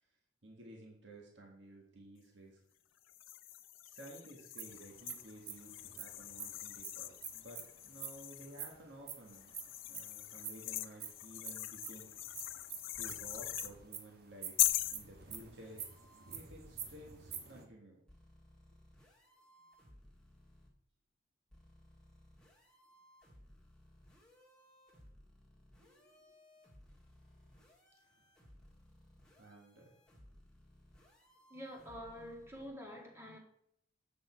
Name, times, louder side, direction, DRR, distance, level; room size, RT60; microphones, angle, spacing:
voice 1, 0.4-2.6 3.9-9.5 9.9-12.5 13.0-14.6 14.9-15.8 16.1-18.0 25.8-26.1 28.0-28.2 29.4-29.9, right 1 dB, 70° right, 1.7 m, -54 dB
sound 1, 3.1-8.6 9.3-13.7 14.6-15.0, left 16 dB, 85° left, 0.5 m, -40 dB
sound 2, 4.6-8.1 8.4-10.1 10.4-17.7, right 7 dB, 50° right, 1.2 m, -46 dB
sound 3, 12.9-13.8 14.6-17.2 18.1-20.7 21.5-32.7, left 1 dB, 5° left, 1.6 m, -62 dB
voice 2, 31.5-33.4, equal, 15° right, 1.6 m, -47 dB
8.4 x 6.5 x 4.5 m
head